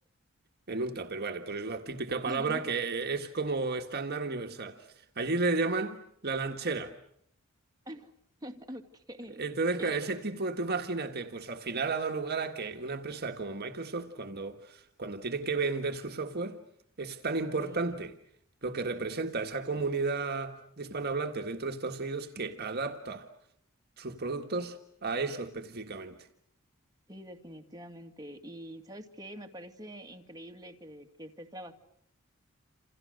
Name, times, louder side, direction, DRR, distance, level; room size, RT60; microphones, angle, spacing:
voice 1, 0.7-4.8 5.1-6.9 9.4-16.6 17.0-18.1 18.6-23.3 24.0-26.3, right 3 dB, 50° right, 1.7 m, -33 dB
voice 2, 2.3-2.6 7.9-8.1 8.4-9.4 9.8-10.0 17.6-18.1 27.1-31.7, equal, 20° right, 2.5 m, -45 dB
28.5 x 28.5 x 6.6 m
head